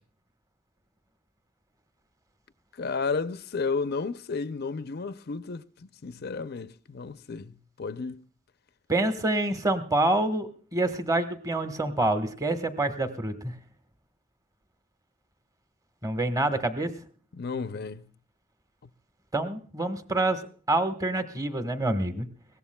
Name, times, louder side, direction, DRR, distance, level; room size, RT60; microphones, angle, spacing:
voice 1, 2.8-8.3 17.3-18.1, left 4 dB, 50° left, 0.5 m, -33 dB
voice 2, 8.9-13.5 16.0-16.9 19.3-20.4 20.7-22.3, right 2 dB, 20° right, 1.2 m, -27 dB
22.5 x 17.5 x 2.2 m
head